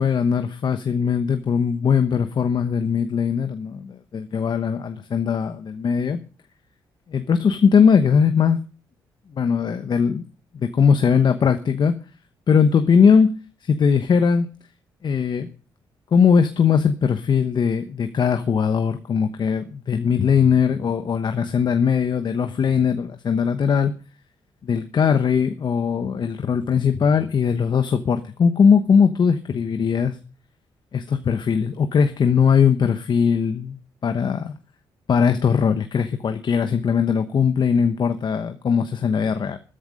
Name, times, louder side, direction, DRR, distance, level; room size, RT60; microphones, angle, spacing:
voice 1, 0.0-6.2 7.1-8.6 9.3-10.2 10.5-12.0 12.5-13.3 13.6-14.5 15.0-15.5 16.1-23.9 24.6-30.2 30.9-34.5 35.1-39.6, left 6 dB, 55° left, 8 dB, 1.0 m, -20 dB
13.5 x 10.0 x 5.3 m, 0.37 s
supercardioid pair, 60°, 9 cm